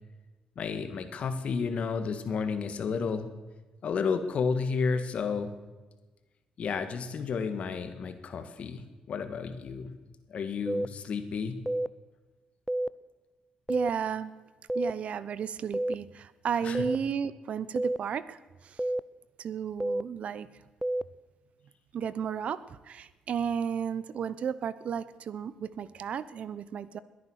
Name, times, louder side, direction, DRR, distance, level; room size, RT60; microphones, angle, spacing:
voice 1, 0.6-3.3 3.8-5.5 6.6-9.9 10.3-11.6 16.6-16.9, left 5 dB, 60° left, 9 dB, 1.8 m, -31 dB
sound 1, 10.7-10.9 11.7-11.9 12.7-12.9 13.7-13.9 14.7-14.9 15.7-15.9 16.7-17.0 17.8-18.0 18.8-19.0 19.8-20.0 20.8-21.0, right 1 dB, 10° right, 0.5 m, -28 dB
voice 2, 13.7-14.3 14.7-18.8 19.4-20.5 21.9-27.0, right 7 dB, 60° right, 16 dB, 0.8 m, -33 dB
20.5 x 9.5 x 6.4 m, 1.2 s
cardioid pair, 85°, 2 cm